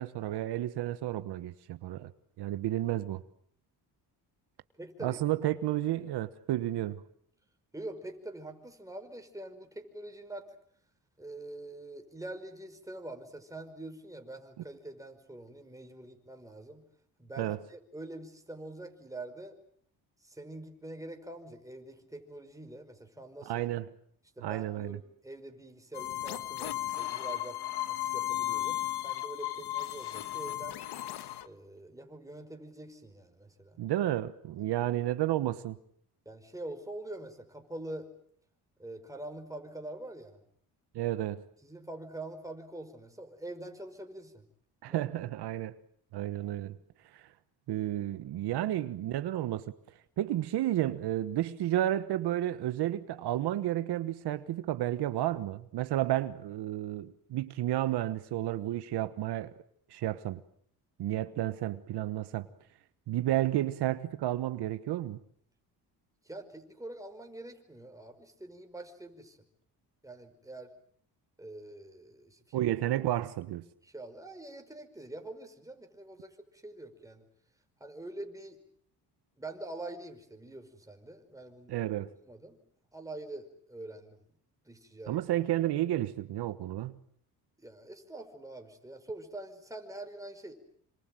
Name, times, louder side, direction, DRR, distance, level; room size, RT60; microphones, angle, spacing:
voice 1, 0.0-2.1 2.4-3.2 5.0-7.0 17.4-17.6 23.4-23.9 24.4-25.0 33.8-35.8 40.9-41.4 44.8-45.8 46.1-46.8 47.1-47.2 47.7-49.7 50.2-59.5 59.9-60.4 61.0-62.5 63.1-65.2 72.5-73.6 81.7-82.1 85.1-87.0, right 13 dB, 75° right, 1.3 m, -31 dB
voice 2, 4.8-5.2 7.7-10.5 11.2-16.8 17.2-19.6 20.2-23.6 24.4-27.6 27.9-30.8 31.4-33.8 36.2-38.1 38.8-40.4 41.6-44.4 44.9-45.1 48.6-48.7 66.2-69.4 70.0-70.7 71.4-72.7 73.8-77.3 77.8-78.6 79.4-81.8 82.2-82.6 82.9-84.2 84.6-85.2 87.6-90.5, right 2 dB, 10° right, 5.2 m, -45 dB
sound 1, 25.9-31.5, left 13 dB, 75° left, 1.6 m, -35 dB
27.0 x 26.0 x 7.7 m
cardioid pair, 90°, 40 cm